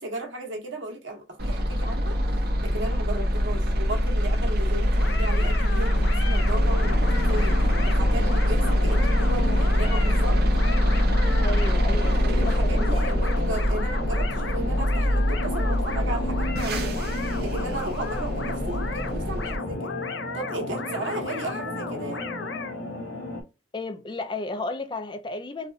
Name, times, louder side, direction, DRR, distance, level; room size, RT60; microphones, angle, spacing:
voice 1, 0.0-2.2 2.6-10.4 12.0-19.9 20.3-22.3, right 2 dB, 85° right, 1.2 m, -35 dB
sound 1, 1.4-19.6, equal, 55° right, 0.8 m, -23 dB
sound 2, 4.9-22.7, left 4 dB, 70° left, 0.6 m, -35 dB
sound 3, 6.8-23.4, left 2 dB, 90° left, 1.3 m, -35 dB
voice 2, 11.4-13.2 23.7-25.7, left 2 dB, 25° left, 0.4 m, -33 dB
4.1 x 2.4 x 2.4 m
head